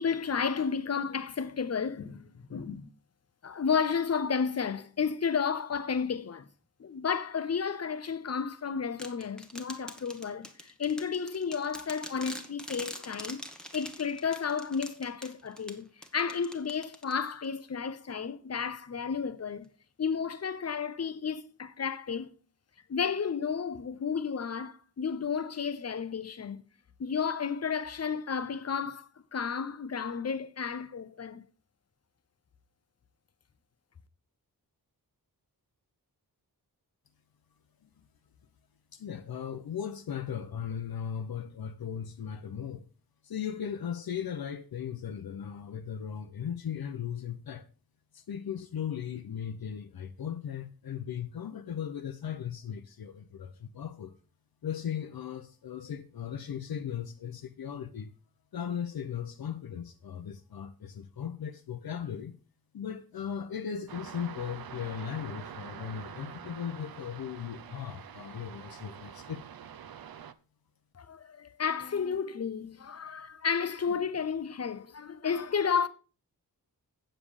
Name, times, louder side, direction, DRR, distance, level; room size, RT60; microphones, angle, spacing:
voice 1, 0.0-2.9 3.4-6.5 6.8-13.5 13.7-19.7 20.0-22.3 22.9-26.6 27.0-31.5 70.9-75.9, left 6 dB, 45° left, 0.7 m, -32 dB
sound 1, 9.0-17.5, equal, ahead, 1.1 m, -45 dB
voice 2, 38.9-42.9 43.2-47.7 48.1-54.2 54.6-58.1 58.5-62.3 62.7-69.4, left 8 dB, 75° left, 0.8 m, -37 dB
sound 2, 63.9-70.3, right 8 dB, 70° right, 0.7 m, -46 dB
8.8 x 7.3 x 4.9 m
wide cardioid pair, 175°, 37 cm